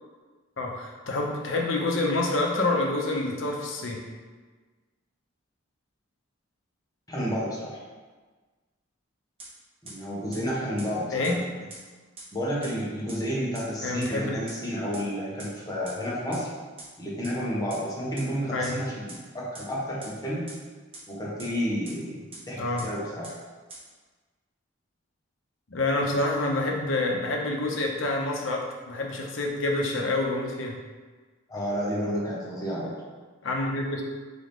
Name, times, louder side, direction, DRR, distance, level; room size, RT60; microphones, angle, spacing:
voice 1, 0.6-4.0 11.1-11.4 13.8-14.4 18.5-18.8 22.6-22.9 25.7-30.8 33.4-34.0, left 2 dB, 70° left, 0 dB, 0.7 m, -27 dB
voice 2, 7.1-7.8 9.8-11.4 12.3-16.5 17.0-20.4 21.1-23.3 31.5-32.9, equal, 20° left, -6 dB, 1.2 m, -31 dB
sound 1, 9.4-9.5 9.9-10.0 10.3-10.4 10.8-10.9 11.2-11.3 11.7-11.8 12.2-12.3 12.6-12.7 13.1-13.2 13.5-13.6 14.0-14.1 14.5-14.6 14.9-15.0 15.4-15.5 15.9-16.0 16.3-16.4 16.8-16.9 17.2-17.3 17.7-17.8 18.2-18.3 18.6-18.7 19.1-19.2 19.5-19.6 20.0-20.1 20.5-20.6 20.9-21.0 21.4-21.5 21.8-21.9 22.3-22.4 22.8-22.9 23.2-23.3 23.7-23.8, right 3 dB, 30° right, 1.4 m, -42 dB
4.0 x 3.8 x 3.5 m, 1.4 s
head